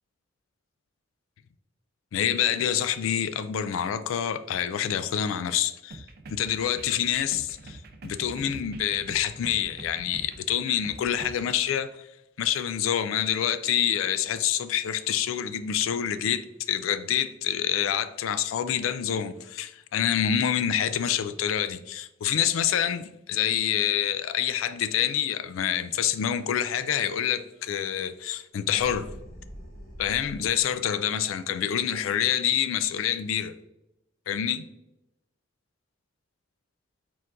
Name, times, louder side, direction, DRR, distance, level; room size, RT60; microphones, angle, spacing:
voice 1, 2.1-12.1 12.4-29.1 30.0-33.5 34.3-34.6, left 9 dB, 90° left, 0.3 m, -27 dB
sound 1, 5.9-11.6, right 2 dB, 50° right, 0.5 m, -44 dB
sound 2, 28.7-30.9, equal, 45° left, 1.1 m, -44 dB
4.5 x 3.8 x 2.5 m
head